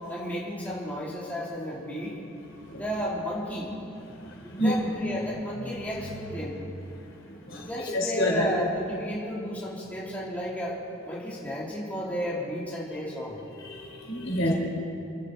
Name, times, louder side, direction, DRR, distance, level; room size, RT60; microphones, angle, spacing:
voice 1, 0.1-2.1 2.7-3.9 4.4-6.6 7.6-10.8 11.1-13.4, equal, 10° left, -7 dB, 2.8 m, -33 dB
voice 2, 4.3-4.7 7.3-7.7 7.9-8.4 13.6-14.5, left 1 dB, 70° left, -1 dB, 3.3 m, -28 dB
25.5 x 12.5 x 3.9 m, 2.7 s
head